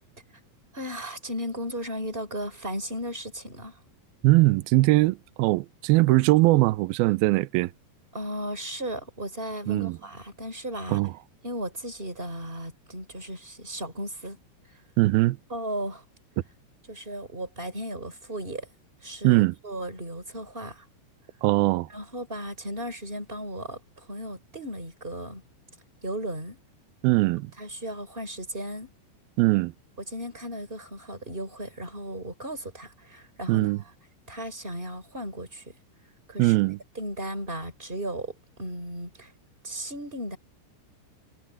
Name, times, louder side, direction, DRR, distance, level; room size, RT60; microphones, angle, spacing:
voice 1, 0.7-3.8 8.1-11.0 11.4-14.4 15.5-16.0 16.9-18.7 19.0-20.8 21.9-25.4 26.0-26.6 27.6-28.9 30.1-33.7 34.3-35.7 36.3-36.6 37.0-39.3 39.6-40.4, right 1 dB, 10° right, 5.2 m, -35 dB
voice 2, 4.2-7.7 9.7-10.0 10.9-11.1 15.0-15.4 19.2-19.5 21.4-21.9 27.0-27.5 29.4-29.7 33.5-33.8 36.4-36.8, right 20 dB, 85° right, 2.1 m, -21 dB
omnidirectional pair, 5.3 m